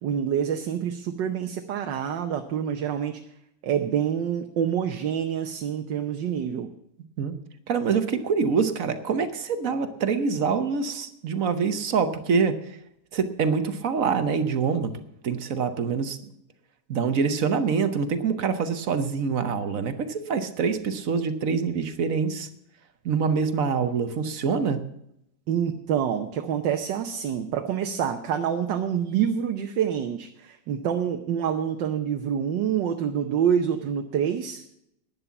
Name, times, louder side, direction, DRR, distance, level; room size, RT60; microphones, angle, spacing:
voice 1, 0.0-3.2 3.6-6.7 25.5-34.6, right 8 dB, 90° right, 5 dB, 1.5 m, -27 dB
voice 2, 7.7-12.6 13.1-14.9 15.2-16.2 16.9-22.5 23.0-24.8, right 5 dB, 55° right, 10 dB, 1.2 m, -25 dB
11.0 x 10.0 x 7.0 m, 0.76 s
omnidirectional pair, 1.9 m